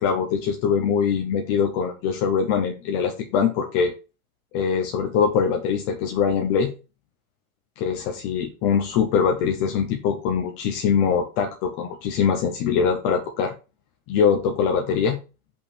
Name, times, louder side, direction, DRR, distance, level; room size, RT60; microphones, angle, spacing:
voice 1, 0.0-3.9 4.5-6.7 7.8-13.5 14.1-15.2, left 6 dB, 15° left, 3 dB, 0.5 m, -23 dB
5.5 x 5.4 x 6.6 m, 0.31 s
supercardioid pair, 160°, 45 cm